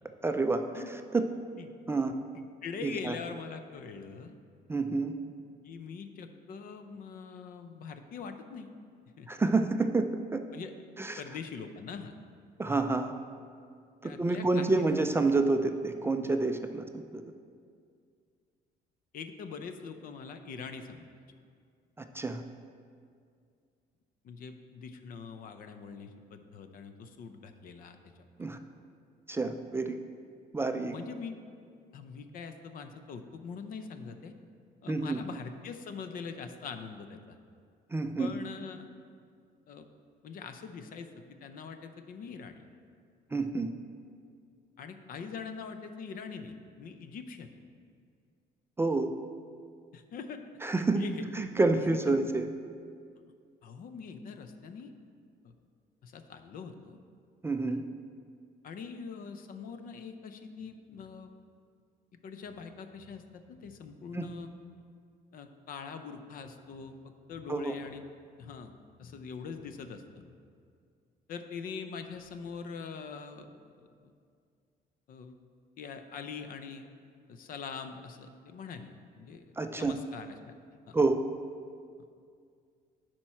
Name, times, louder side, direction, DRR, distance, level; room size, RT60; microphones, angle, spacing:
voice 1, 0.2-0.6 1.1-1.3 1.9-2.1 2.8-3.2 4.7-5.1 9.3-10.1 10.3-10.4 11.0-11.2 12.6-13.1 14.0-16.8 17.1-17.2 22.1-22.4 28.4-28.6 29.3-30.0 30.5-30.9 34.9-35.2 37.9-38.4 43.3-43.7 48.8-49.1 50.6-51.0 51.3-52.5 57.4-57.8 64.1-64.3 67.5-67.7 79.6-79.9 80.9-81.2, right 3 dB, 15° right, 6 dB, 0.4 m, -28 dB
voice 2, 2.3-4.3 5.6-8.7 9.2-9.3 10.5-10.7 11.2-12.1 14.0-14.9 19.1-21.4 24.2-28.3 30.8-31.4 31.9-34.3 34.8-37.4 38.2-38.9 39.7-39.9 40.2-42.6 44.8-47.5 49.9-50.4 50.8-51.3 52.1-52.2 53.6-54.9 55.4-55.6 56.0-57.0 58.6-61.3 62.2-64.5 65.3-68.1 68.4-68.7 69.0-70.4 71.3-73.6 75.1-75.3 75.8-76.9 77.3-79.4 79.7-80.5 80.9-81.0, left 5 dB, 55° left, 8 dB, 0.6 m, -43 dB
10.5 x 4.5 x 4.4 m, 2.2 s
cardioid pair, 110°, 17 cm